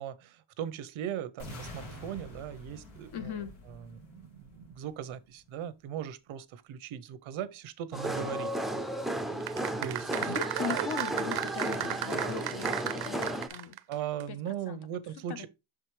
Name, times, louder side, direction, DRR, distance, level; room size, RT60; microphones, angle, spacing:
voice 1, 0.0-3.1 3.7-8.5 9.8-10.3 13.9-15.5, right 9 dB, 85° right, 0.8 m, -39 dB
sound 1, 1.4-5.4, left 1 dB, 90° left, 2.4 m, -47 dB
voice 2, 3.1-3.5 10.2-13.8 14.3-14.8 15.3-15.5, left 7 dB, 55° left, 1.0 m, -39 dB
sound 2, 7.9-13.5, right 1 dB, ahead, 0.4 m, -34 dB
sound 3, 9.4-13.9 14.2-14.3, right 13 dB, 55° right, 0.5 m, -35 dB
6.3 x 4.8 x 3.1 m
cardioid pair, 130°, 47 cm